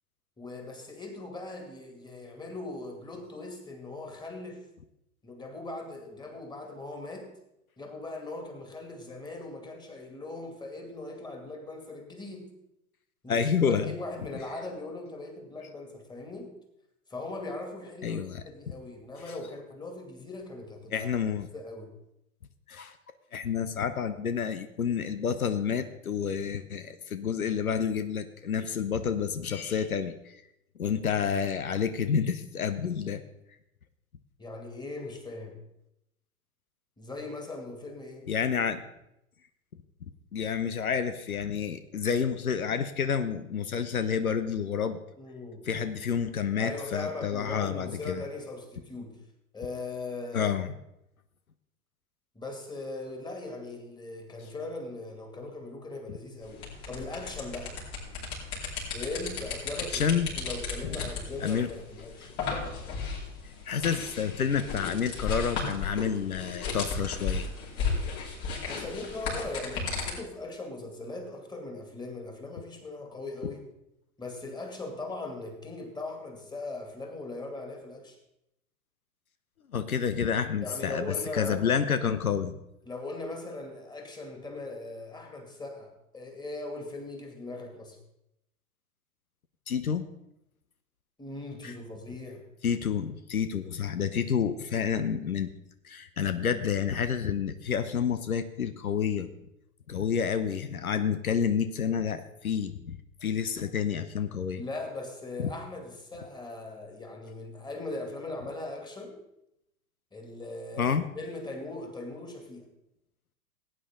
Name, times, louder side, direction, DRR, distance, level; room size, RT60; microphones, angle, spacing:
voice 1, 0.4-4.7 5.2-7.3 7.8-12.5 13.2-16.5 17.1-21.1 21.5-21.9 34.4-35.6 37.0-38.3 45.2-46.1 46.6-49.2 49.5-50.5 52.3-57.8 58.9-62.3 68.7-73.6 74.2-78.2 80.3-81.7 82.9-88.0 91.2-92.4 104.6-109.2 110.1-112.7, left 2 dB, 10° left, 3 dB, 2.4 m, -39 dB
voice 2, 13.3-13.9 18.0-18.4 19.3-19.4 20.9-21.5 22.7-23.0 23.3-30.4 30.8-33.2 38.3-38.8 40.3-45.0 45.7-48.2 50.3-50.7 59.9-60.3 60.8-61.0 61.4-61.7 62.2-62.3 63.7-67.5 79.7-82.5 89.7-90.1 91.6-91.7 92.6-95.5 95.8-99.3 99.9-103.0 103.2-104.6 105.4-105.5 110.8-111.0, left 7 dB, 85° left, 11 dB, 0.9 m, -29 dB
sound 1, 56.4-70.1, left 4 dB, 50° left, 4.6 m, -35 dB
17.5 x 9.0 x 3.7 m, 0.83 s
figure-of-eight pair, 95°, 42 cm